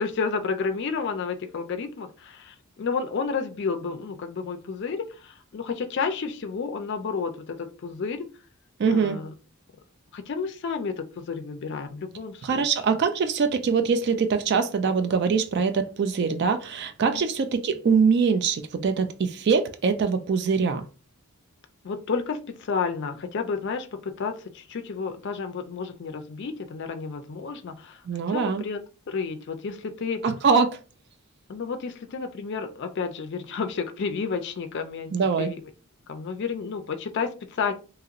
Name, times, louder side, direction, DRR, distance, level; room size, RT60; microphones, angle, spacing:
voice 1, 0.0-8.3 8.9-9.3 10.1-12.7 17.1-17.2 21.8-28.0 28.3-28.8 29.1-30.3 31.5-35.6 36.1-37.7, left 5 dB, 50° left, 0.4 m, -31 dB
voice 2, 8.8-9.2 12.4-20.8 28.1-28.6 30.2-30.8 35.1-35.5, right 5 dB, 50° right, 0.3 m, -23 dB
2.9 x 2.9 x 2.4 m
head